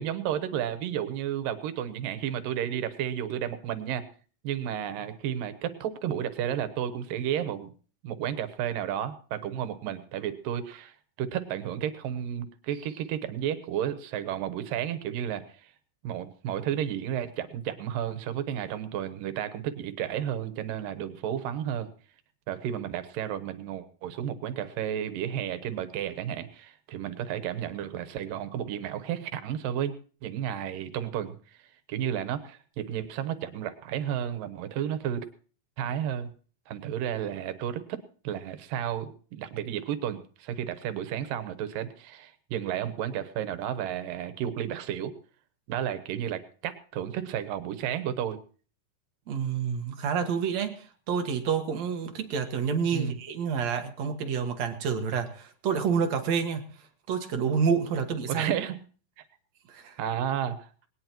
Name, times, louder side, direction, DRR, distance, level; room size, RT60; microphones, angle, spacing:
voice 1, 0.0-4.0 4.4-7.7 8.0-15.7 16.0-21.9 22.5-29.9 30.2-31.4 31.9-35.3 35.8-36.3 36.7-45.1 45.7-48.4 52.9-53.2 58.3-58.8 60.0-60.7, right 10 dB, 90° right, 12 dB, 2.8 m, -32 dB
voice 2, 49.3-56.7 57.1-58.5 59.7-60.0, right 6 dB, 60° right, 6 dB, 2.4 m, -28 dB
20.0 x 18.5 x 3.0 m, 0.40 s
omnidirectional pair, 3.8 m